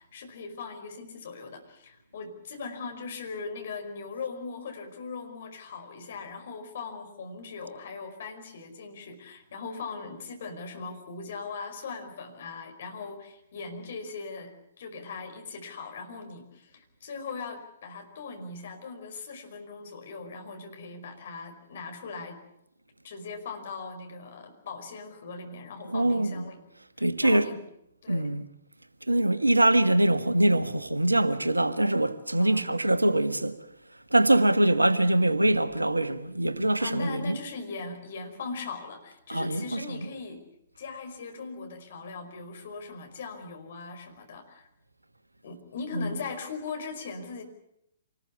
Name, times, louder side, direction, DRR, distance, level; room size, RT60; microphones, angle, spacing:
voice 1, 0.0-22.4 23.0-26.6 27.2-27.6 28.0-28.3 32.4-32.7 36.8-40.4 40.8-44.7 45.4-47.4, left 4 dB, 55° left, 5.2 m, -39 dB
voice 2, 25.8-26.5 27.0-27.5 28.1-28.4 29.1-33.6 34.1-37.3 39.3-39.8 45.9-46.1, right 1 dB, 85° right, 1.4 m, -23 dB
26.5 x 20.0 x 7.0 m
figure-of-eight pair, 120°, 0 cm